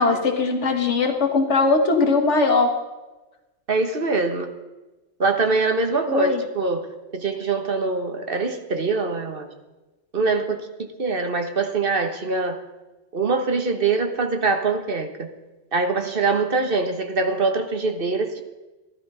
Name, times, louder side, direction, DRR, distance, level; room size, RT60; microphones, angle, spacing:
voice 1, 0.0-2.7 6.1-6.4, left 3 dB, 85° left, 3 dB, 1.8 m, -20 dB
voice 2, 3.7-4.5 5.2-6.9 7.1-9.5 10.1-12.6 13.1-15.3 15.7-18.4, right 3 dB, 50° right, 5 dB, 1.5 m, -23 dB
15.0 x 12.0 x 5.5 m, 1.1 s
omnidirectional pair, 1.2 m